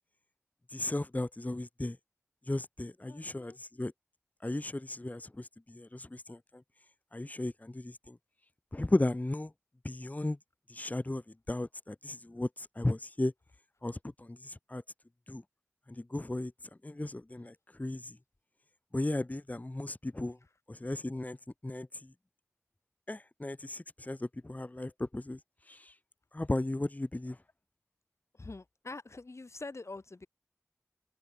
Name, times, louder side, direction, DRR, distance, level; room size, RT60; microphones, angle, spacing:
voice 1, 0.7-2.0 2.5-3.9 4.4-6.4 7.1-8.2 8.7-9.5 9.8-10.4 10.7-11.2 11.5-13.3 13.8-14.8 15.3-15.4 15.9-16.5 16.8-18.2 18.9-20.4 20.7-21.4 21.6-22.1 23.1-25.4 25.7-26.0 26.3-27.4, left 2 dB, 30° left, 0.9 m, -35 dB
voice 2, 3.1-3.6 28.3-30.3, left 3 dB, 65° left, 2.4 m, -45 dB
wide cardioid pair, 45°, 5 cm